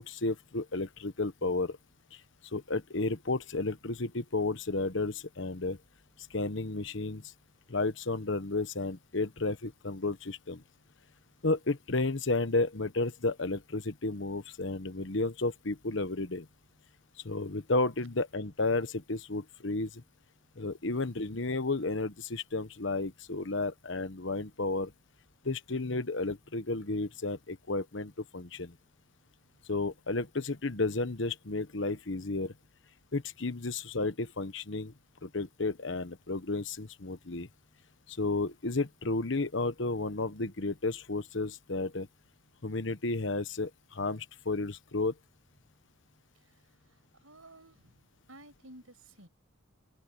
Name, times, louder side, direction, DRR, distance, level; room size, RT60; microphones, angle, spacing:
voice 1, 0.0-1.8 2.1-5.8 6.3-7.3 7.7-10.6 11.4-16.5 17.2-20.0 20.6-24.9 25.4-28.8 29.7-32.5 33.1-34.9 35.2-37.5 38.1-42.1 42.6-45.1, left 3 dB, 60° left, 1.2 m, -32 dB
voice 2, 46.3-48.0 48.3-49.3, right 1 dB, 85° right, 6.7 m, -55 dB
open air
head